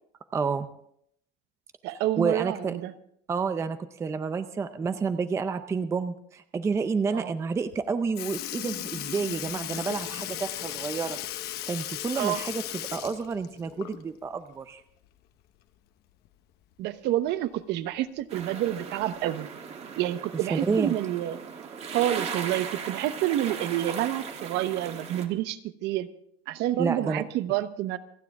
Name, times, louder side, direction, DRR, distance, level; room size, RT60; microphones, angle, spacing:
voice 1, 0.3-0.7 2.2-2.8 3.3-11.2 11.7-14.8 20.5-20.9 26.8-27.2, right 5 dB, 15° right, 10 dB, 0.5 m, -29 dB
voice 2, 1.8-2.9 7.1-7.3 12.2-12.4 16.8-19.5 20.0-21.4 21.9-26.1 26.5-28.0, right 13 dB, 55° right, 12 dB, 0.9 m, -28 dB
Sink (filling or washing) / Liquid, 7.7-7.8 8.1-14.2 14.6-14.7 16.2-16.3 17.3-17.4 18.2-18.4 19.2-19.3, left 13 dB, 50° left, 1.1 m, -36 dB
sound 1, 18.3-25.3, right 6 dB, 30° right, 1.5 m, -38 dB
28.5 x 9.5 x 3.6 m, 0.68 s
cardioid pair, 160°, 21 cm